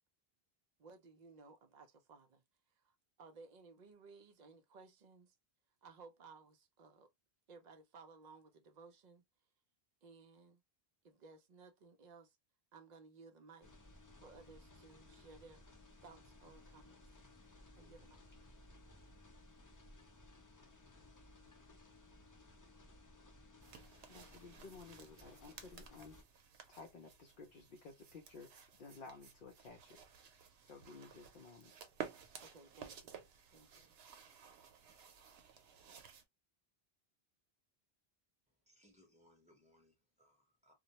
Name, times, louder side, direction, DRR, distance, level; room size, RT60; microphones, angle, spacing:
voice 1, 0.8-2.4 2.8-2.9 3.2-5.3 5.8-7.1 7.5-9.2 10.0-10.6 11.0-12.4 12.7-13.7 14.2-15.6 16.0-16.9 17.7-18.2 32.4-33.2 33.5-33.9, right 4 dB, 55° right, 0.5 m, -59 dB
sound 1, 13.6-26.2, left 2 dB, 30° left, 0.3 m, -60 dB
sound 2, 23.6-36.2, right 8 dB, 90° right, 0.8 m, -54 dB
voice 2, 24.1-26.2 26.7-30.0 30.6-31.7, left 4 dB, 60° left, 0.7 m, -55 dB
voice 3, 38.5-40.7, left 1 dB, 5° right, 0.8 m, -69 dB
2.2 x 2.0 x 2.7 m
omnidirectional pair, 1.0 m